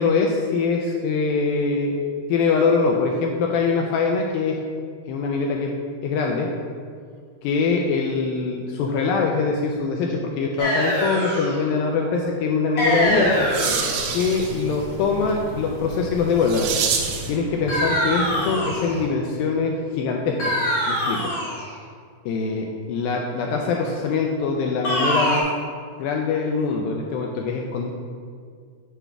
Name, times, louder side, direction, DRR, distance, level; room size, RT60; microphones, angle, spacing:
voice 1, 0.0-2.0 2.3-4.6 5.1-5.7 6.0-6.5 7.4-13.4 14.1-16.7 17.3-21.3 22.3-25.4 26.0-27.9, left 4 dB, 85° left, 1 dB, 2.1 m, -23 dB
sound 1, 10.6-11.6 12.8-14.1 17.7-19.0 20.4-21.7 24.8-25.4, equal, 55° left, 1.7 m, -23 dB
sound 2, 12.9-19.1, equal, 40° left, 1.4 m, -37 dB
sound 3, 13.0-17.4, right 6 dB, 85° right, 2.6 m, -29 dB
8.2 x 3.4 x 5.9 m, 2.1 s
omnidirectional pair, 4.6 m